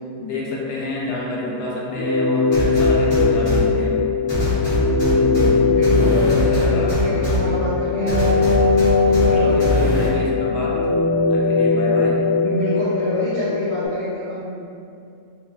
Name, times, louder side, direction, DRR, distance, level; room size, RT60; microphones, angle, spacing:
voice 1, 0.2-4.0 5.0-5.7 6.2-6.9 8.4-10.8 11.2-12.2, left 2 dB, 85° left, -4 dB, 1.2 m, -29 dB
sound 1, 1.9-13.9, left 4 dB, 70° left, 0.6 m, -20 dB
sound 2, 2.5-3.6 4.3-5.5 5.8-7.4 8.1-9.3 9.6-10.1, right 1 dB, 20° left, 0.8 m, -23 dB
voice 2, 5.6-8.2 9.2-9.6 12.4-14.4, right 1 dB, 75° right, -10 dB, 1.0 m, -27 dB
2.8 x 2.3 x 2.2 m, 2.5 s
omnidirectional pair, 1.7 m